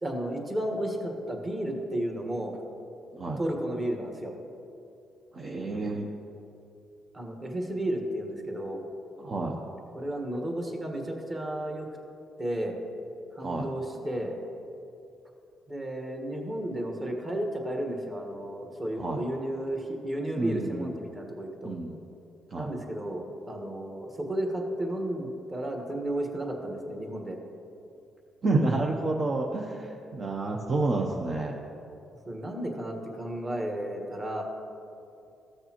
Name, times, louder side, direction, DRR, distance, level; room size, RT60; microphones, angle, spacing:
voice 1, 0.0-2.6 3.4-4.3 7.1-8.8 9.9-11.9 12.4-12.8 13.4-14.3 15.7-21.7 22.5-27.4 32.3-34.4, right 1 dB, 25° right, 2 dB, 1.5 m, -33 dB
voice 2, 5.3-6.1 9.2-9.6 13.4-13.7 19.0-19.2 20.4-20.9 21.6-22.0 22.5-22.7 28.4-31.6, right 2 dB, 45° right, -1 dB, 0.8 m, -29 dB
15.0 x 6.6 x 3.0 m, 2.7 s
cardioid pair, 90°, 0 cm